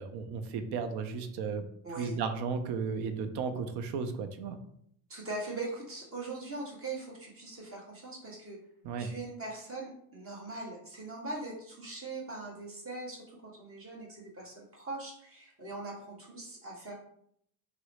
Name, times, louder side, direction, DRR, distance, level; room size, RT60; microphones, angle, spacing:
voice 1, 0.0-1.6 2.0-4.6 8.8-9.1, right 5 dB, 65° right, 9 dB, 0.6 m, -34 dB
voice 2, 1.8-2.2 5.1-8.6 9.0-16.9, right 2 dB, 30° right, -2 dB, 1.1 m, -41 dB
2.9 x 2.0 x 4.1 m, 0.69 s
supercardioid pair, 85°, 43 cm